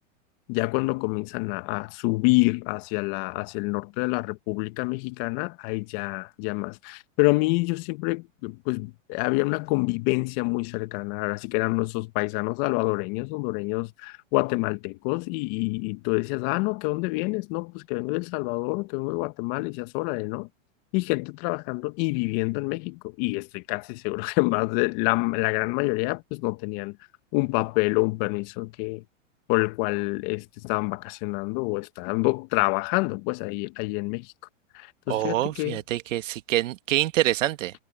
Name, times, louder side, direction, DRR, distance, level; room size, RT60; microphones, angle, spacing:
voice 1, 0.5-20.5 20.9-27.0 27.3-29.0 29.5-34.3 34.7-35.8, left 25 dB, 45° left, 1.6 m, -27 dB
voice 2, 35.1-37.7, right 15 dB, 70° right, 1.7 m, -26 dB
hypercardioid pair, 125°, 39 cm